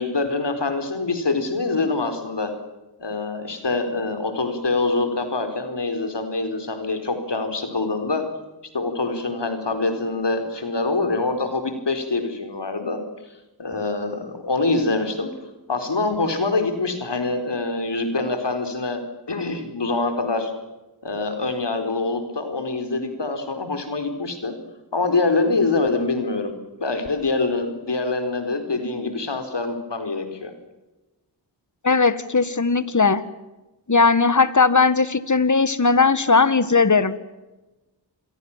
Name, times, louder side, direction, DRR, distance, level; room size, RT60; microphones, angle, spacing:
voice 1, 0.0-2.5 3.0-8.2 8.7-13.0 13.6-15.3 15.7-19.0 19.3-20.5 21.0-24.5 24.9-26.5 26.8-30.5, left 3 dB, 75° left, 8 dB, 4.7 m, -25 dB
voice 2, 31.8-33.2 33.9-37.1, left 4 dB, 45° left, 15 dB, 1.8 m, -18 dB
28.0 x 22.5 x 7.5 m, 1.1 s
wide cardioid pair, 50°, 42 cm